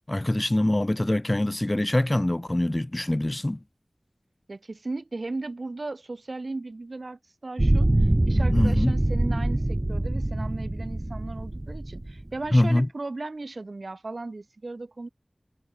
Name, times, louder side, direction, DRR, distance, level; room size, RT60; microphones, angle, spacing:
voice 1, 0.1-3.6 8.5-9.0 12.5-12.9, left 1 dB, 30° left, 3.7 m, -24 dB
voice 2, 4.5-15.1, right 2 dB, 70° right, 5.8 m, -36 dB
sound 1, 7.6-12.5, right 1 dB, 35° right, 3.5 m, -24 dB
wide cardioid pair, 45°, 0 cm